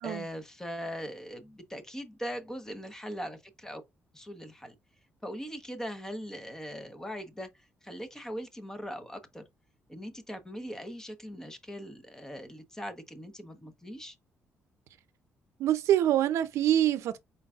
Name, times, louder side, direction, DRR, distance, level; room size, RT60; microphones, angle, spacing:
voice 1, 0.0-3.8 4.1-4.7 5.2-7.5 7.8-9.4 9.9-14.2, equal, 10° left, 0.9 m, -40 dB
voice 2, 15.6-17.2, right 11 dB, 80° right, 0.5 m, -25 dB
4.4 x 3.9 x 2.4 m
cardioid pair, 105°, 5 cm